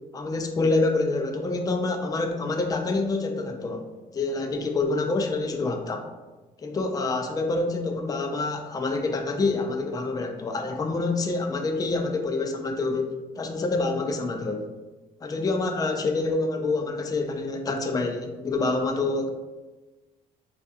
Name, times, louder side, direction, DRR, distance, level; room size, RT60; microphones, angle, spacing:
voice 1, 0.1-3.8 4.1-6.1 6.6-14.7 15.2-19.3, left 3 dB, 20° left, 4 dB, 0.4 m, -27 dB
3.2 x 2.4 x 2.7 m, 1.2 s
supercardioid pair, 65°, 17 cm